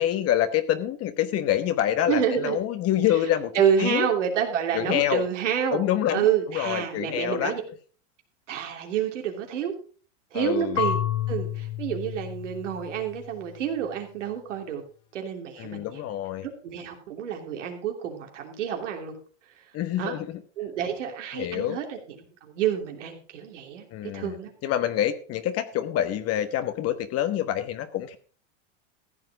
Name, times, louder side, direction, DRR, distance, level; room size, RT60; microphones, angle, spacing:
voice 1, 0.0-3.5 3.8-4.1 4.7-5.3 5.7-6.2 6.5-7.5 10.3-10.8 15.6-16.5 19.7-20.4 21.3-21.8 23.9-24.4 24.6-28.2, left 11 dB, 40° left, 10 dB, 1.3 m, -26 dB
voice 2, 2.1-2.6 3.5-5.8 6.1-7.6 8.5-9.7 10.3-11.0 11.3-14.8 15.1-16.0 16.4-19.1 20.0-20.2 20.6-22.0 22.4-23.9 24.1-24.5, right 8 dB, 85° right, 3 dB, 3.2 m, -28 dB
Marimba xylophone / Wood, 10.8-13.6, left 10 dB, 70° left, 2.0 m, -31 dB
15.0 x 7.7 x 5.0 m, 0.40 s
hypercardioid pair, 110°, 36 cm